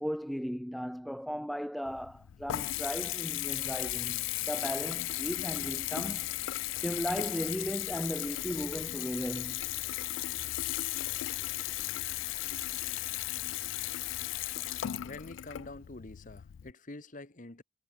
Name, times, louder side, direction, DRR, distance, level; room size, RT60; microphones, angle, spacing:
voice 1, 0.0-6.3 6.8-9.6, equal, ahead, 0.3 m, -36 dB
Water tap faucet / Bathtub (filling or washing) / Trickle dribble, 1.8-16.7, left 15 dB, 85° left, 0.3 m, -36 dB
voice 2, 15.0-17.6, left 2 dB, 45° left, 1.5 m, -46 dB
head